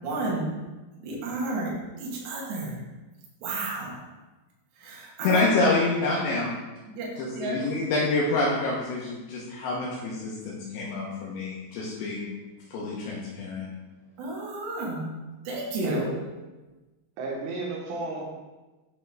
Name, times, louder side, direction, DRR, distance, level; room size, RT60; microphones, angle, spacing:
voice 1, 0.0-0.5 1.0-2.8 3.4-4.0 4.8-5.5 6.9-7.7 14.2-15.1 15.5-16.1, right 2 dB, 70° right, -4 dB, 3.7 m, -31 dB
voice 2, 5.2-6.5 7.2-12.3 12.7-13.7, left 3 dB, 75° left, -5 dB, 3.1 m, -27 dB
voice 3, 17.2-18.2, right 3 dB, 85° right, -1 dB, 3.9 m, -33 dB
9.1 x 5.7 x 3.7 m, 1.2 s
omnidirectional pair, 5.5 m